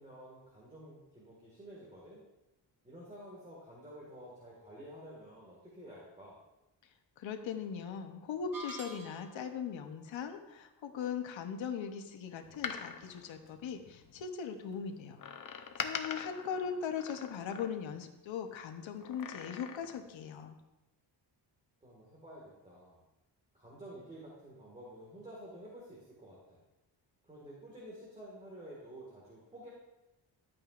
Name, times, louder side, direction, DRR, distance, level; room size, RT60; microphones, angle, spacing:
voice 1, 0.0-2.2 2.8-6.4 21.8-23.0 23.5-26.6 27.2-29.7, right 1 dB, 15° right, -5 dB, 1.8 m, -51 dB
voice 2, 7.2-15.2 15.5-20.6, left 7 dB, 90° left, 6 dB, 0.9 m, -39 dB
sound 1, 8.5-9.5, right 1 dB, 45° right, 1.2 m, -46 dB
Door, 12.4-14.2 15.2-18.1 19.0-20.1 20.4-20.5, left 7 dB, 45° left, 0.7 m, -43 dB
12.0 x 8.7 x 2.5 m, 1.0 s
wide cardioid pair, 165°, 45 cm